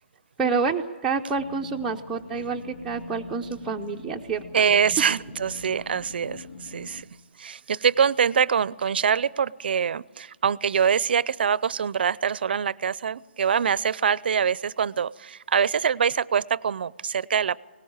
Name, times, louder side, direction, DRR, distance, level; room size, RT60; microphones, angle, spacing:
voice 1, 0.4-4.4, right 5 dB, 5° right, -3 dB, 0.6 m, -28 dB
sound 1, 1.3-7.0, left 3 dB, 80° left, 2.4 m, -44 dB
voice 2, 4.5-7.1 7.4-17.6, right 7 dB, 55° right, 22 dB, 0.6 m, -24 dB
21.0 x 18.0 x 8.8 m, 1.3 s
hypercardioid pair, 165°, 6 cm